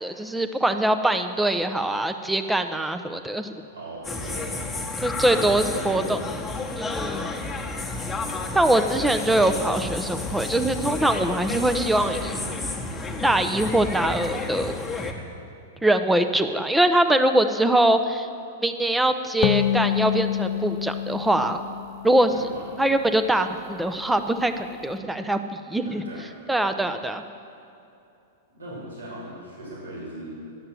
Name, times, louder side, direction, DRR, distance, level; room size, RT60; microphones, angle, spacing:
voice 1, 0.0-3.5 5.0-6.2 6.8-7.6 8.5-12.4 13.2-14.7 15.8-18.3 18.6-21.6 22.0-22.3 22.8-25.4 25.7-26.0 26.5-27.2, right 1 dB, 5° right, 8 dB, 0.6 m, -23 dB
voice 2, 3.7-4.5 5.2-6.3 22.3-22.6 25.8-26.3 28.5-30.4, right 1 dB, 80° right, -5 dB, 3.0 m, -39 dB
sound 1, 4.0-15.1, left 3 dB, 10° left, 1.2 m, -31 dB
sound 2, 19.4-22.9, left 11 dB, 40° left, 0.3 m, -27 dB
10.5 x 6.7 x 7.5 m, 2.7 s
hypercardioid pair, 105°, 0 cm